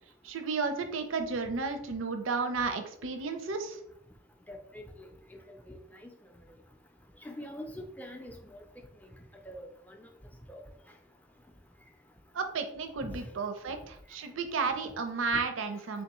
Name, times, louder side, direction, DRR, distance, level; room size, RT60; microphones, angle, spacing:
voice 1, 0.2-3.8 12.3-16.0, right 4 dB, 90° right, 7 dB, 0.5 m, -33 dB
voice 2, 4.5-5.4 5.7-5.8 7.2-8.8 9.5-10.1 10.5-10.6 13.0-13.2, equal, 10° left, 3 dB, 0.4 m, -44 dB
3.6 x 3.5 x 2.9 m, 0.68 s
head